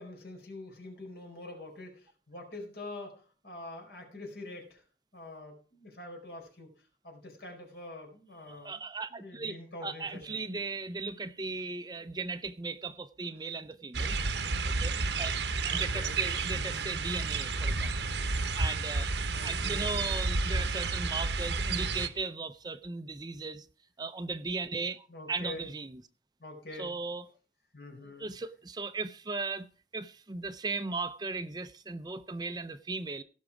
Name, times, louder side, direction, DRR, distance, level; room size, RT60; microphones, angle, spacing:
voice 1, 0.0-4.8 5.1-6.7 7.0-8.8 9.1-10.4 15.7-16.2 16.5-16.8 19.3-19.9 25.1-25.7 26.4-27.0 27.7-28.3, left 2 dB, 65° left, 4.5 m, -45 dB
voice 2, 8.5-14.2 14.8-15.4 15.6-18.1 18.6-19.1 19.4-23.7 24.0-26.0 26.8-27.3 28.2-29.7 29.9-33.2, right 3 dB, 25° right, 0.5 m, -37 dB
sound 1, 13.9-22.1, right 3 dB, 80° right, 1.0 m, -31 dB
17.0 x 6.3 x 4.8 m
head